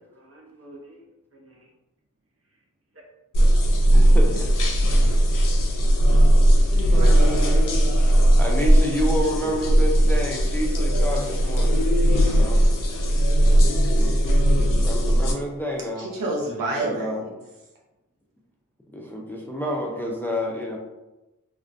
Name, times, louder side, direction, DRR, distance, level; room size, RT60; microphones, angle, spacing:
voice 1, 0.0-1.7 2.5-2.6 2.9-3.1 3.4-3.5 3.9-4.5 12.9-13.3, right 1 dB, 45° right, -2 dB, 0.7 m, -49 dB
sound 1, 3.3-15.3, right 1 dB, 75° left, 0.5 m, -18 dB
voice 2, 3.9-4.5 4.9-5.0 8.4-11.8 12.2-12.6 13.9-14.3 14.8-16.1 16.8-17.2 18.9-20.8, equal, 5° left, -1 dB, 0.4 m, -29 dB
voice 3, 6.9-7.7 16.0-17.3, right 2 dB, 85° right, -2 dB, 0.6 m, -29 dB
2.3 x 2.2 x 2.5 m, 1.0 s
wide cardioid pair, 50°, 33 cm